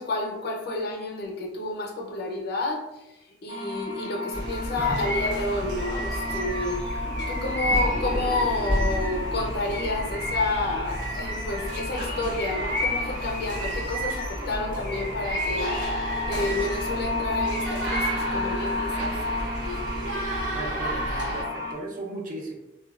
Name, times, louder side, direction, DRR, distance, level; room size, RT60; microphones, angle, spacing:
voice 1, 0.0-2.8 3.4-6.8 7.3-19.1, left 2 dB, 60° left, 1 dB, 0.5 m, -30 dB
sound 1, 3.5-21.7, left 2 dB, 65° right, 1.1 m, -34 dB
sound 2, 4.3-21.4, equal, 85° right, 1.0 m, -32 dB
Bird vocalization bird call bird song, 4.8-9.3 9.7-14.4 14.8-16.9 17.3-18.3, equal, 5° left, 0.5 m, -33 dB
voice 2, 20.5-22.5, right 2 dB, 45° right, -1 dB, 0.5 m, -36 dB
2.8 x 2.1 x 2.3 m, 0.92 s
head